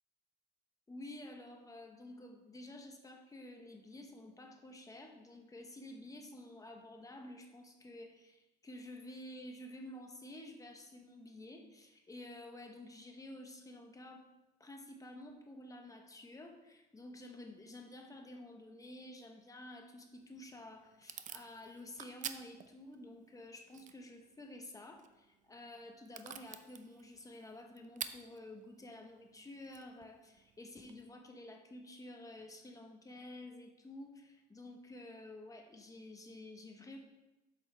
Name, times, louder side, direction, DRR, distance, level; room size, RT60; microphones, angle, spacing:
voice 1, 0.9-14.3 14.6-37.0, left 1 dB, 20° left, 3 dB, 1.0 m, -51 dB
Packing tape duct tape / Tearing, 20.2-31.0, right 9 dB, 45° right, 0.5 m, -51 dB
8.2 x 7.0 x 3.3 m, 1.0 s
cardioid pair, 110°, 17 cm